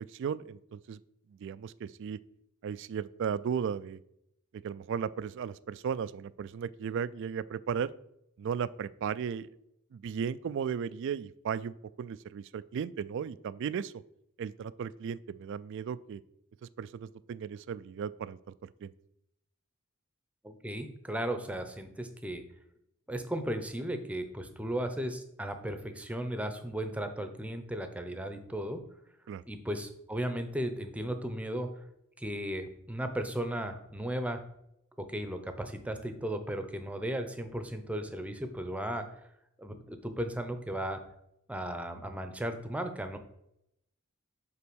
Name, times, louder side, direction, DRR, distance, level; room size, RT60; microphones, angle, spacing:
voice 1, 0.1-1.0 1.3-2.2 2.6-4.0 4.6-7.9 8.4-9.5 9.9-13.9 14.4-16.2 16.6-18.9 29.3-29.4, right 7 dB, 60° right, 17 dB, 0.3 m, -36 dB
voice 2, 20.4-22.4 23.1-28.8 29.5-31.8 32.2-34.4 35.0-39.1 39.6-41.0 41.5-43.2, right 1 dB, 5° right, 8 dB, 0.7 m, -35 dB
5.7 x 4.5 x 6.2 m, 0.79 s
head